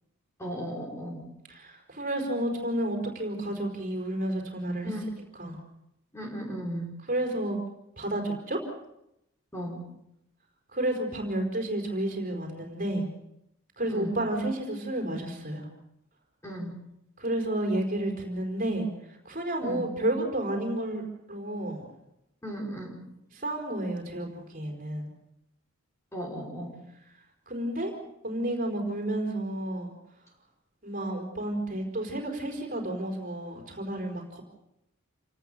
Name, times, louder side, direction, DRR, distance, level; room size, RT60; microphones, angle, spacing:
voice 1, 0.4-1.3 4.8-5.1 6.1-7.0 9.5-9.8 13.9-14.2 16.4-16.8 19.6-19.9 22.4-23.0 26.1-26.8, equal, 15° left, 0 dB, 5.4 m, -36 dB
voice 2, 1.5-4.9 5.4-5.6 7.1-7.6 8.0-8.7 10.7-13.1 13.8-15.7 17.2-18.9 19.2-21.0 21.3-21.8 23.3-25.1 27.5-27.9 28.2-29.9 30.8-34.4, right 1 dB, 40° right, 2 dB, 4.8 m, -31 dB
28.5 x 18.5 x 6.9 m, 0.83 s
head